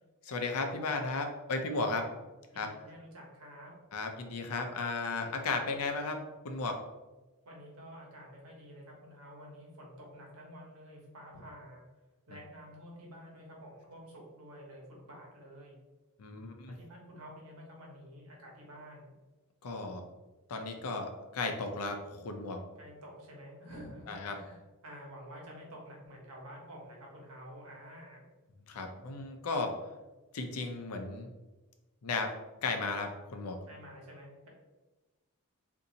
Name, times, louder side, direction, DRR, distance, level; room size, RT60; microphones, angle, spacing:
voice 1, 0.2-2.1 2.6-2.7 3.9-6.8 16.2-16.7 19.6-20.0 20.5-22.6 24.1-24.4 28.7-29.7 30.3-31.3 32.0-32.3 32.6-33.6, left 3 dB, 80° left, 5 dB, 0.5 m, -35 dB
voice 2, 2.5-3.7 7.4-11.8 12.3-15.8 16.7-19.1 22.8-28.3 29.5-29.6 33.7-34.5, equal, 75° right, -2 dB, 1.1 m, -50 dB
2.7 x 2.6 x 3.9 m, 1.2 s
head